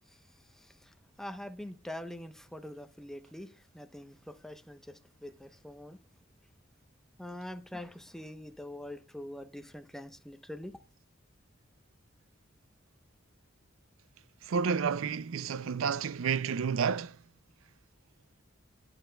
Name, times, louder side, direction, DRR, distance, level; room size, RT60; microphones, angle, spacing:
voice 1, 0.1-6.0 7.2-10.8, left 1 dB, ahead, 0.8 m, -44 dB
voice 2, 14.4-17.2, right 6 dB, 85° right, 0.4 m, -30 dB
19.5 x 7.8 x 2.2 m
head